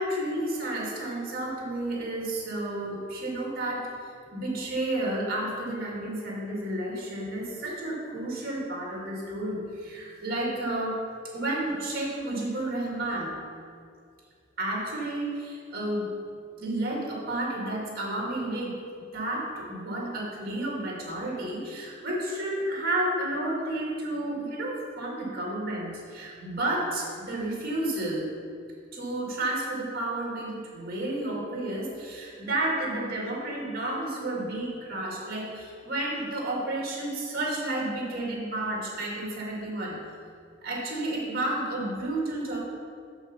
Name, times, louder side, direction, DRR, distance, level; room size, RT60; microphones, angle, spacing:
voice 1, 0.0-11.0 11.3-13.3 14.6-16.1 16.6-28.3 28.9-40.0 40.6-42.6, right 1 dB, 50° right, -3 dB, 2.3 m, -31 dB
7.1 x 5.8 x 5.7 m, 2.3 s
head